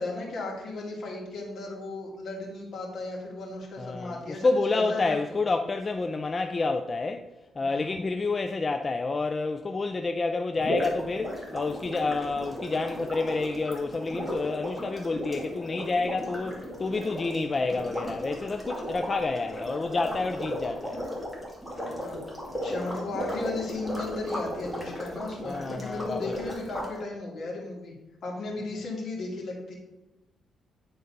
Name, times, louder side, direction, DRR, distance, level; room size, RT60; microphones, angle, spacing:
voice 1, 0.0-5.4 7.6-7.9 22.0-22.2 22.6-27.9 28.2-29.7, left 2 dB, 60° left, 2.3 m, -35 dB
voice 2, 3.8-7.3 7.6-21.0 25.4-26.5, left 3 dB, 25° left, 0.4 m, -29 dB
sound 1, 10.6-26.9, equal, ahead, 2.1 m, -35 dB
9.9 x 3.9 x 5.4 m
cardioid pair, 135°, 0 cm